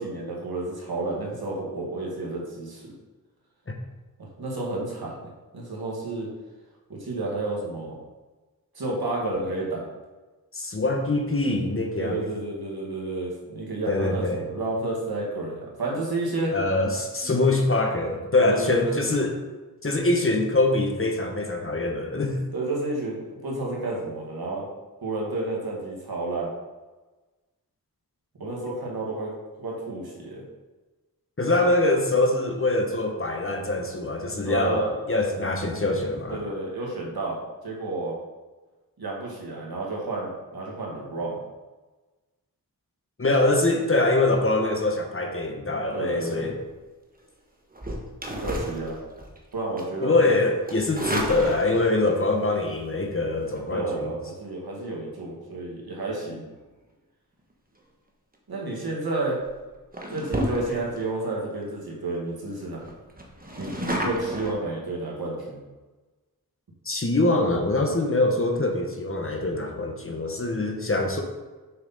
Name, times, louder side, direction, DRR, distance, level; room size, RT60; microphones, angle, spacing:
voice 1, 0.0-2.9 4.2-6.3 6.9-8.0 8.7-9.9 12.0-16.6 17.2-17.4 18.4-18.9 22.5-24.7 25.0-26.5 28.4-29.3 29.6-30.4 31.5-31.7 34.4-34.9 36.3-38.2 39.0-41.4 45.9-46.6 48.3-49.0 49.5-50.4 53.7-56.4 58.5-59.4 60.1-62.9 63.6-65.6, right 2 dB, 80° right, -3 dB, 2.0 m, -31 dB
voice 2, 10.5-12.3 13.9-14.5 16.5-19.3 19.8-22.4 31.4-36.4 43.2-46.6 50.0-54.1 66.8-71.2, left 2 dB, 35° left, 3 dB, 1.2 m, -24 dB
sound 1, 47.7-49.4 49.8-50.0 50.7-52.1 53.4-53.6 58.6-58.9 59.4-59.6 59.9-61.0 61.6-61.7 61.9-62.0 62.3-62.4 62.8-64.5, equal, 25° right, 1.3 m, -31 dB
6.6 x 5.8 x 4.2 m, 1.2 s
wide cardioid pair, 70°, 37 cm